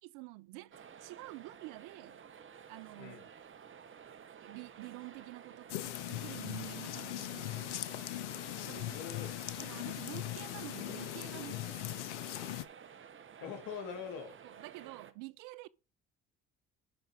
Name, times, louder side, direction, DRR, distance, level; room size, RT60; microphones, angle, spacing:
voice 1, 0.0-0.7 1.0-2.2 2.7-3.2 4.4-7.7 8.6-9.0 9.6-12.1 14.4-15.7, right 21 dB, 65° right, 0.5 m, -48 dB
sound 1, 0.7-15.1, right 7 dB, 35° right, 1.0 m, -53 dB
sound 2, 5.7-12.6, left 14 dB, 80° left, 0.6 m, -40 dB
voice 2, 8.6-9.5 13.4-14.4, left 6 dB, 60° left, 2.3 m, -44 dB
11.5 x 5.6 x 3.4 m
hypercardioid pair, 50°, 35 cm